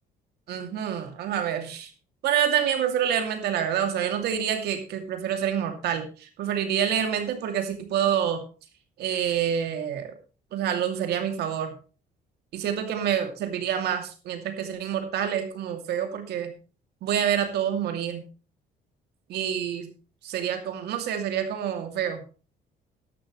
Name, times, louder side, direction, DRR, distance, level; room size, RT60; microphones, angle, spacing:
voice 1, 0.5-1.9 2.2-8.4 9.0-10.1 10.5-11.7 12.5-16.5 17.0-18.2 19.3-19.9 20.2-22.2, right 9 dB, 75° right, 6 dB, 2.6 m, -27 dB
13.0 x 11.5 x 3.2 m, 0.34 s
cardioid pair, 110°, 17 cm